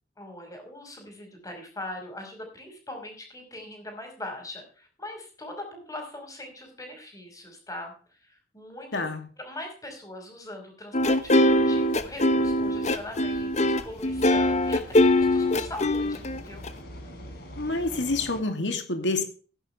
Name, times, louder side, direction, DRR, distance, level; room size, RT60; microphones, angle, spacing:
voice 1, 0.2-9.0 9.4-16.7, left 1 dB, 20° left, 5.4 m, -41 dB
voice 2, 8.9-9.2 17.6-19.2, left 2 dB, 80° left, 2.6 m, -27 dB
sound 1, 10.9-16.7, left 1 dB, 40° left, 1.1 m, -22 dB
sound 2, 11.4-18.4, left 1 dB, 60° left, 4.0 m, -44 dB
15.5 x 11.0 x 3.4 m
head